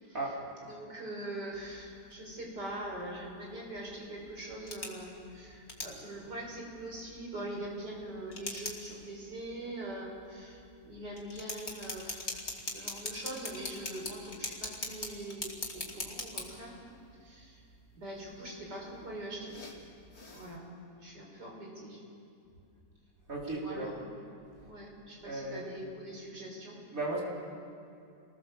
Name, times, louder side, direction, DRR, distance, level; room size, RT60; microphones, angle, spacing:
voice 1, 0.6-12.2 12.7-16.8 17.2-17.6 17.9-19.6 20.3-20.6 21.0-22.0 23.5-24.3 24.6-26.8, right 1 dB, 85° right, -1 dB, 6.2 m, -43 dB
sound 1, 1.5-20.6, left 2 dB, 40° left, 3.0 m, -44 dB
voice 2, 23.3-23.9 25.2-25.6 26.9-27.2, right 2 dB, 55° right, -4 dB, 4.9 m, -35 dB
29.5 x 20.0 x 7.3 m, 2.5 s
omnidirectional pair, 1.8 m